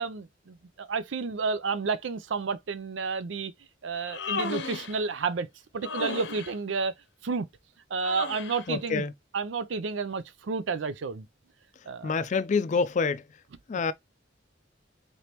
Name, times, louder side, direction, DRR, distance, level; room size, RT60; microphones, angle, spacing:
voice 1, 0.0-3.5 3.8-5.5 5.7-6.9 7.2-7.5 7.9-9.0 9.3-11.3 11.9-12.2, right 4 dB, 85° right, 0.5 m, -31 dB
Human voice, 3.9-5.0 5.8-6.5 8.0-8.7, left 4 dB, 70° left, 0.7 m, -34 dB
voice 2, 8.7-9.1 12.0-13.2 13.7-13.9, left 4 dB, 40° left, 0.4 m, -27 dB
3.9 x 3.4 x 2.9 m
head